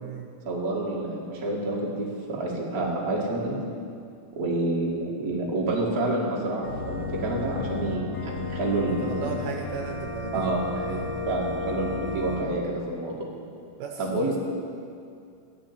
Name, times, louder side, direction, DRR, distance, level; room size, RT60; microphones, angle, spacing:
voice 1, 0.4-3.6 4.3-9.3 10.3-11.0 11.3-13.3 14.0-14.4, right 2 dB, 30° right, -3 dB, 2.1 m, -28 dB
Organ, 6.6-12.4, left 3 dB, 55° left, 1.7 m, -33 dB
voice 2, 8.9-11.2 13.8-14.1, right 6 dB, 75° right, 2 dB, 2.4 m, -36 dB
15.0 x 7.0 x 9.6 m, 2.4 s
omnidirectional pair, 4.1 m